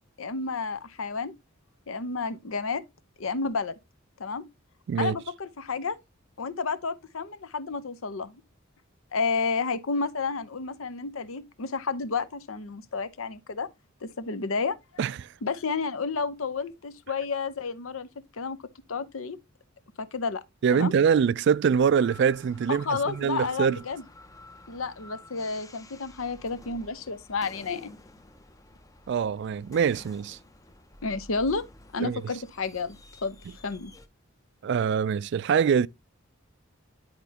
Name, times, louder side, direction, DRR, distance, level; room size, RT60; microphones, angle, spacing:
voice 1, 0.2-1.3 1.9-2.8 3.2-3.7 4.2-4.4 5.0-6.0 6.4-8.4 9.1-13.7 14.0-14.8 15.4-18.1 18.3-18.6 18.9-19.4 20.0-20.4 20.7-20.9 22.7-24.0 24.7-28.0 31.0-31.6 31.9-33.4 33.6-33.9, left 4 dB, 80° left, 0.7 m, -31 dB
voice 2, 15.0-15.3 20.6-23.8 29.1-30.4 32.0-32.2 34.6-35.9, right 7 dB, 55° right, 0.3 m, -24 dB
sound 1, 21.7-34.1, left 2 dB, 15° left, 0.5 m, -51 dB
10.5 x 4.3 x 2.8 m
head